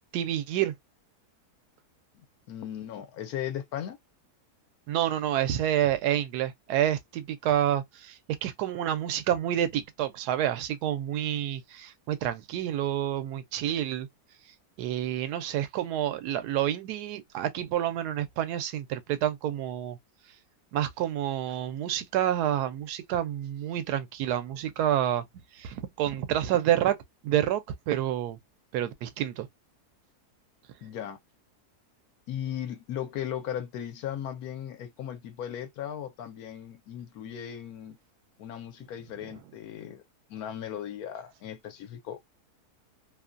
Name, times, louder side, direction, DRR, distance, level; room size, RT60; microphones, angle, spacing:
voice 1, 0.1-0.7 4.9-14.1 14.8-20.0 20.7-25.3 25.5-27.0 27.2-28.4 28.7-29.5 39.2-39.4, right 11 dB, 85° right, 1.1 m, -28 dB
voice 2, 2.1-4.0 30.8-31.2 32.3-38.0 38.4-40.0 40.3-42.2, left 10 dB, 75° left, 1.1 m, -37 dB
2.9 x 2.2 x 2.4 m
omnidirectional pair, 1.6 m